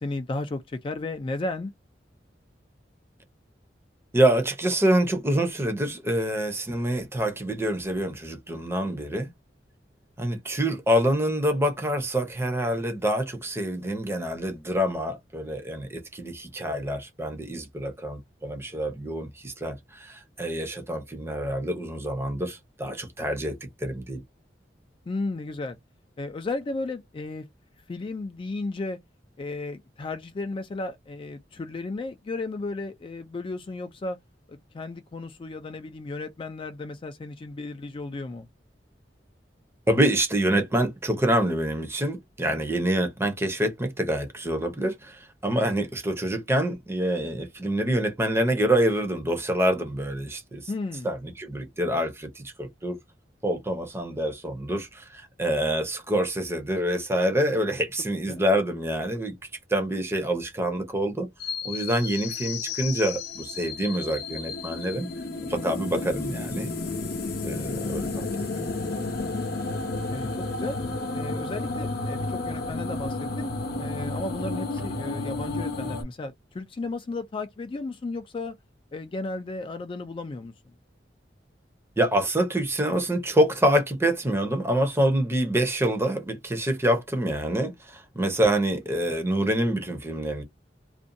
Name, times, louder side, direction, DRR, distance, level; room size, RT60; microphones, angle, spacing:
voice 1, 0.0-1.7 25.1-25.8 26.2-27.5 27.9-29.0 29.4-34.2 34.5-38.5 50.7-51.1 58.3-58.4 70.1-70.8 71.1-73.5 73.8-78.5 78.9-80.5 89.1-89.2, left 2 dB, 30° left, 0.3 m, -34 dB
voice 2, 4.1-9.3 10.2-24.2 39.9-50.7 51.0-53.0 53.4-59.4 59.7-61.3 61.6-65.1 65.5-66.7 67.4-68.3 68.6-68.7 82.0-90.4, right 1 dB, 15° right, 0.6 m, -26 dB
sound 1, 61.4-76.0, left 3 dB, 60° left, 0.7 m, -32 dB
2.5 x 2.2 x 2.6 m
head